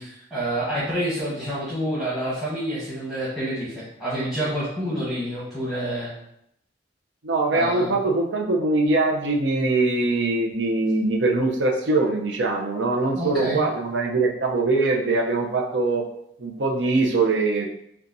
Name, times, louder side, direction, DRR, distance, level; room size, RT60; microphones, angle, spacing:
voice 1, 0.0-6.1 7.5-8.0 13.1-13.6, right 1 dB, ahead, -10 dB, 1.1 m, -28 dB
voice 2, 7.2-16.0 16.4-17.7, right 3 dB, 75° right, 1 dB, 0.7 m, -22 dB
6.8 x 2.4 x 2.7 m, 0.76 s
head